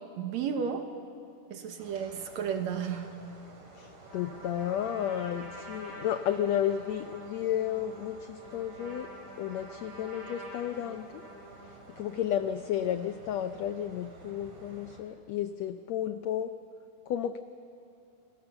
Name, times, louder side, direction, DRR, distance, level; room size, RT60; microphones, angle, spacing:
voice 1, 0.2-0.9 1.5-3.3, right 7 dB, 65° right, 6 dB, 2.1 m, -33 dB
sound 1, 1.8-15.0, right 2 dB, 40° right, 3.7 m, -53 dB
voice 2, 3.7-9.1 9.4-11.2 12.0-16.5 17.1-17.4, left 10 dB, 80° left, 9 dB, 1.5 m, -32 dB
Trumpet, 4.0-12.1, right 1 dB, 85° right, 6.8 m, -47 dB
27.5 x 20.5 x 7.0 m, 2.8 s
omnidirectional pair, 3.9 m